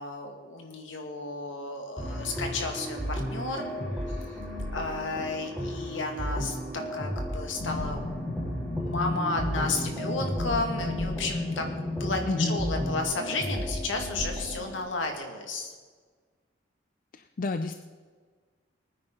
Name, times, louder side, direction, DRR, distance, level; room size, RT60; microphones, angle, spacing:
voice 1, 0.0-3.7 4.1-4.4 4.7-6.6 6.9-8.0 8.3-11.6 11.9-15.7, left 3 dB, 80° left, 3 dB, 2.1 m, -33 dB
sound 1, 2.0-14.8, equal, ahead, 5.1 m, -34 dB
sound 2, 7.6-13.0, left 2 dB, 25° left, 1.7 m, -33 dB
voice 2, 12.3-12.6 17.1-17.8, left 3 dB, 45° left, 8 dB, 0.5 m, -30 dB
21.0 x 9.6 x 4.0 m, 1.5 s
head